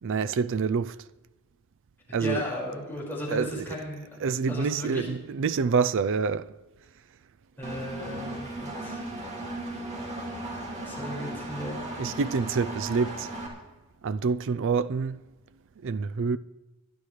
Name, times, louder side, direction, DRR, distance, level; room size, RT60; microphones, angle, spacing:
voice 1, 0.0-1.0 2.1-2.4 3.3-3.6 4.2-6.5 12.0-13.3 14.0-15.2 15.8-16.4, right 5 dB, 60° right, 0.4 m, -27 dB
voice 2, 2.2-4.0 4.5-5.1 7.6-9.1 10.8-11.8, left 1 dB, 10° left, 5.2 m, -35 dB
Engine, 7.6-13.5, right 1 dB, 30° right, 2.3 m, -36 dB
22.0 x 10.5 x 3.3 m
head